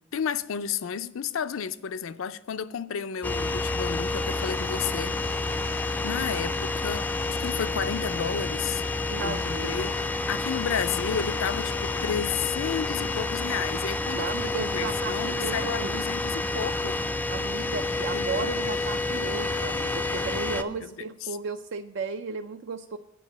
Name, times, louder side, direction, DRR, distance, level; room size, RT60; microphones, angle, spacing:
voice 1, 0.1-5.2 6.0-8.8 9.2-9.9 10.3-17.0 18.1-18.5 20.5-20.9 21.2-21.4, left 7 dB, 80° left, 0.5 m, -32 dB
sound 1, 3.2-20.6, left 3 dB, 10° left, 0.3 m, -29 dB
voice 2, 9.1-9.9 14.1-16.0 17.3-23.0, right 4 dB, 60° right, 0.4 m, -35 dB
8.5 x 5.5 x 7.7 m
head